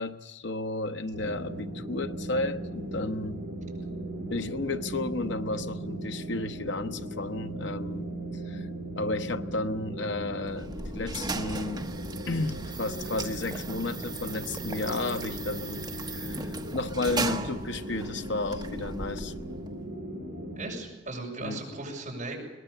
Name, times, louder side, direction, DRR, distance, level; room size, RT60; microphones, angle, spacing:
voice 1, 0.0-3.4 4.3-8.1 8.5-8.7 9.0-11.9 12.2-19.3 21.4-21.6, left 2 dB, 70° left, 1.0 m, -33 dB
sound 1, 1.1-20.7, right 1 dB, 55° right, 7.6 m, -38 dB
sound 2, 10.4-19.7, right 3 dB, 25° right, 1.2 m, -37 dB
voice 2, 20.6-22.4, right 2 dB, 40° right, 6.9 m, -37 dB
22.5 x 19.0 x 6.9 m
head